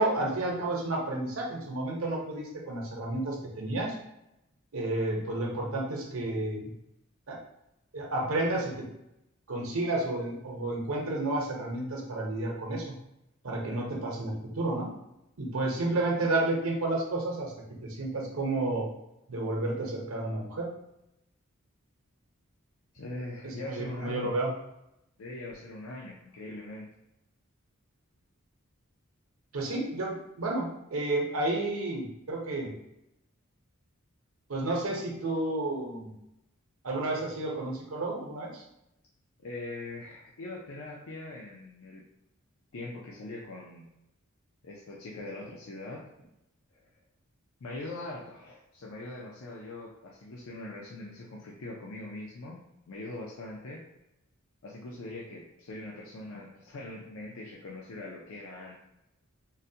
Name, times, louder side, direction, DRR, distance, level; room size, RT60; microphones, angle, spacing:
voice 1, 0.0-3.9 4.7-6.7 7.3-7.4 7.9-8.9 9.5-12.9 13.4-14.9 15.4-17.5 17.8-18.9 19.3-20.7 23.4-24.5 29.5-32.7 34.5-36.1 36.8-38.6, right 2 dB, 70° right, -1 dB, 0.8 m, -31 dB
voice 2, 22.9-24.3 25.2-26.9 39.4-42.0 42.7-43.9 44.6-46.1 46.7-46.8 47.6-52.6 52.9-53.8 54.6-58.8, left 2 dB, 75° left, -3 dB, 0.5 m, -42 dB
3.8 x 2.1 x 2.7 m, 0.86 s
head